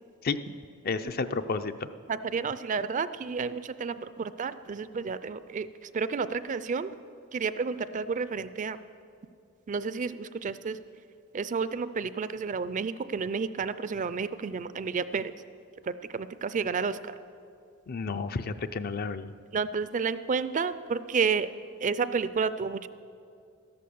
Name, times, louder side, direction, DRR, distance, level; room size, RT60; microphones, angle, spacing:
voice 1, 0.8-1.7 17.9-19.3, left 4 dB, 45° left, 11 dB, 0.5 m, -31 dB
voice 2, 2.1-5.7 5.9-7.0 7.3-8.8 9.7-10.8 11.3-15.3 16.1-17.1 19.5-21.5 21.8-22.9, right 5 dB, 40° right, 14 dB, 0.4 m, -30 dB
13.5 x 11.5 x 7.0 m, 2.4 s
head